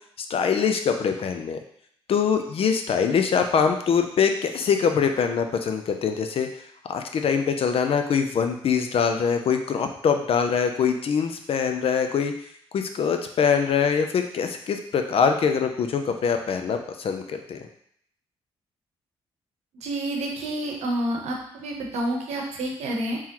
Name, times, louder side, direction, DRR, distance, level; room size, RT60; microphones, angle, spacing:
voice 1, 0.3-1.6 2.1-6.5 6.9-12.3 12.7-17.7, left 6 dB, 60° left, 6 dB, 0.5 m, -23 dB
voice 2, 19.8-23.2, right 1 dB, 80° right, 0 dB, 0.8 m, -29 dB
3.6 x 3.0 x 2.9 m, 0.66 s
cardioid pair, 70°, 11 cm